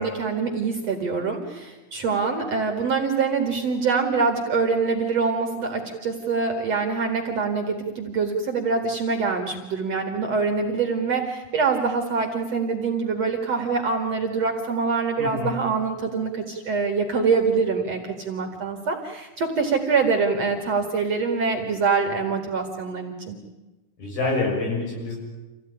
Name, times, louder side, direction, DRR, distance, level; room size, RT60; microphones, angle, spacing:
voice 1, 0.0-23.4, right 4 dB, 50° right, 4 dB, 2.6 m, -24 dB
voice 2, 15.2-15.6 24.0-25.2, left 3 dB, 65° left, -1 dB, 8.6 m, -26 dB
26.5 x 16.5 x 9.9 m, 1.1 s
omnidirectional pair, 4.7 m